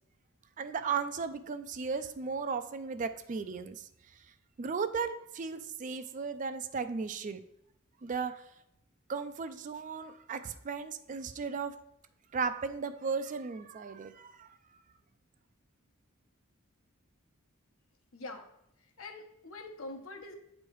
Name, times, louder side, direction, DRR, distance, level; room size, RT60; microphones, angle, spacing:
voice 1, 0.6-3.9 4.6-7.4 8.0-8.4 9.1-11.7 12.3-14.5, right 5 dB, 35° right, 10 dB, 0.3 m, -35 dB
voice 2, 18.1-18.5 19.0-20.3, left 2 dB, 75° left, 3 dB, 1.0 m, -44 dB
8.7 x 3.2 x 4.5 m, 0.78 s
head